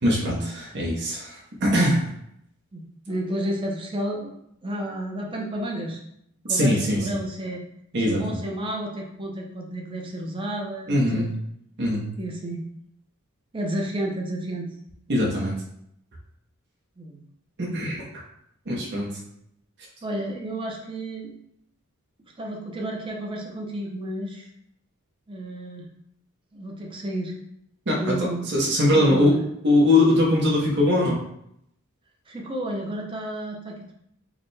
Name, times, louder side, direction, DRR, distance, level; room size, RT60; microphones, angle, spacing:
voice 1, 0.0-2.1 6.5-7.2 7.9-8.4 10.9-11.3 11.8-12.1 15.1-15.5 17.6-18.2 18.7-19.2 27.9-29.4 29.6-31.2, left 1 dB, 55° right, -3 dB, 0.9 m, -22 dB
voice 2, 2.7-4.3 4.6-6.0 6.5-7.6 8.0-11.3 12.2-12.6 13.5-14.8 17.0-17.2 20.0-21.3 22.4-24.5 25.3-25.9 26.5-27.3 28.0-28.5 29.0-29.4 32.3-33.9, right 1 dB, 25° right, -1 dB, 0.7 m, -31 dB
4.8 x 2.2 x 3.2 m, 0.75 s
head